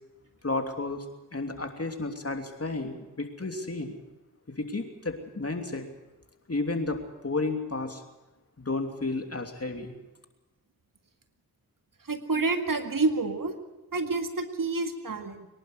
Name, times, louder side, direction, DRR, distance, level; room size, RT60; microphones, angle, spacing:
voice 1, 0.4-1.0 1.3-3.9 4.6-5.9 6.5-8.0 8.6-10.0, left 3 dB, 40° left, 5 dB, 3.0 m, -32 dB
voice 2, 12.0-13.5 13.9-15.5, right 3 dB, 60° right, 6 dB, 2.1 m, -28 dB
23.5 x 11.0 x 9.7 m, 1.1 s
cardioid pair, 40°, 38 cm